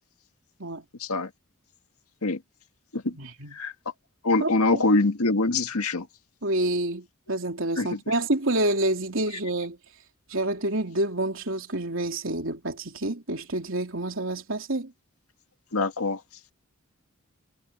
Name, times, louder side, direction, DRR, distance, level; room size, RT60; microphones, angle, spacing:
voice 1, 1.0-1.3 2.2-2.4 2.9-3.2 3.5-3.7 4.2-6.1 7.8-8.0 15.7-16.2, left 2 dB, 90° left, 1.8 m, -24 dB
voice 2, 3.1-3.5 4.4-4.5 6.4-9.8 10.3-14.9, right 1 dB, 65° right, 3.2 m, -28 dB
head